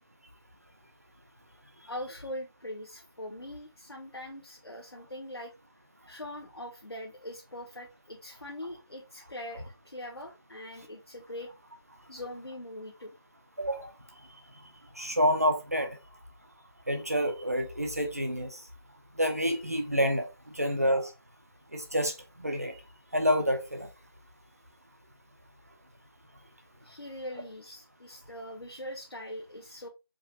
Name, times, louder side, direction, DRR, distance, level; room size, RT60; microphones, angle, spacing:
voice 1, 1.9-5.5 6.0-11.5 12.1-13.2 26.8-29.9, left 1 dB, 70° left, 1.0 m, -42 dB
voice 2, 13.6-13.9 15.0-15.9 16.9-18.6 19.2-20.2 20.5-21.1 21.7-22.7 23.1-23.9, equal, 40° right, 0.9 m, -28 dB
4.7 x 3.2 x 2.8 m
figure-of-eight pair, 175°, 13 cm